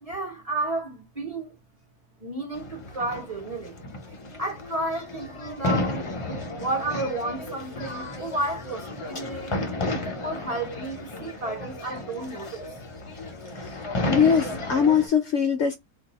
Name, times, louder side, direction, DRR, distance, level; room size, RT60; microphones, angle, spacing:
voice 1, 0.0-1.6 2.2-3.8 4.4-6.0 6.6-9.6 10.2-12.8, right 2 dB, 30° right, 0.8 m, -32 dB
sound 1, 2.5-15.1, left 1 dB, 35° left, 0.5 m, -33 dB
voice 2, 14.1-15.8, left 7 dB, 65° left, 0.7 m, -21 dB
2.6 x 2.3 x 3.9 m
omnidirectional pair, 1.5 m